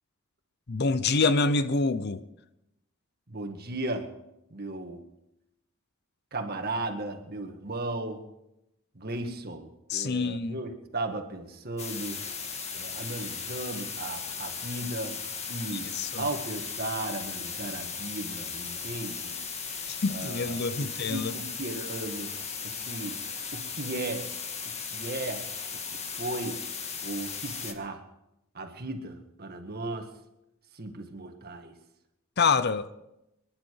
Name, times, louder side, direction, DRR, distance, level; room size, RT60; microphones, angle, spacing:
voice 1, 0.7-2.2 9.9-10.5 15.9-16.2 19.9-21.3 32.4-32.9, left 4 dB, 50° left, 0.7 m, -26 dB
voice 2, 3.3-4.1 4.5-5.1 6.3-8.2 8.9-12.2 12.7-15.2 15.5-15.9 16.2-19.4 20.1-22.3 22.6-23.2 23.5-24.3 24.9-25.4 25.7-26.6 27.0-28.0 28.5-30.1 30.7-31.7, right 2 dB, 50° right, 1.9 m, -36 dB
sound 1, 11.8-27.7, left 5 dB, 30° left, 1.6 m, -37 dB
27.0 x 10.5 x 4.8 m
head